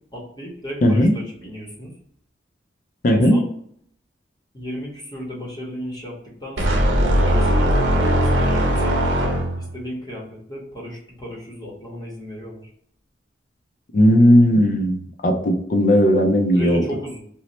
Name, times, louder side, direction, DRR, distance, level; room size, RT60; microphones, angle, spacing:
voice 1, 0.0-1.9 3.1-3.5 4.5-12.7 16.5-17.2, equal, 20° left, -4 dB, 0.8 m, -35 dB
voice 2, 0.8-1.1 3.0-3.4 13.9-15.0 15.2-16.8, equal, 45° left, 4 dB, 0.4 m, -16 dB
sound 1, 6.6-9.8, equal, 85° right, 0.7 m, -19 dB
3.0 x 2.0 x 4.0 m, 0.66 s
head